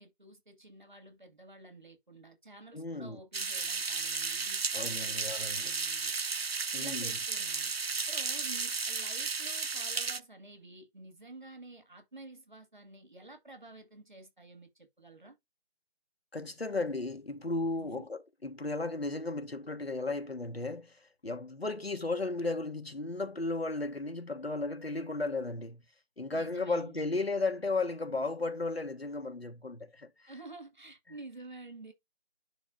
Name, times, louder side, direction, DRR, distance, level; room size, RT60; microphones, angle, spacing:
voice 1, 0.0-6.1 6.8-7.7 8.1-15.4 17.8-18.1 26.3-27.1 30.3-31.9, right 2 dB, 45° right, 1.8 m, -50 dB
voice 2, 2.7-3.2 4.7-5.7 6.7-7.1 16.3-25.8 26.2-30.3, left 3 dB, 70° left, 1.5 m, -35 dB
sound 1, 3.3-10.2, right 4 dB, 70° right, 0.6 m, -34 dB
10.5 x 3.8 x 2.5 m
figure-of-eight pair, 170°, 32 cm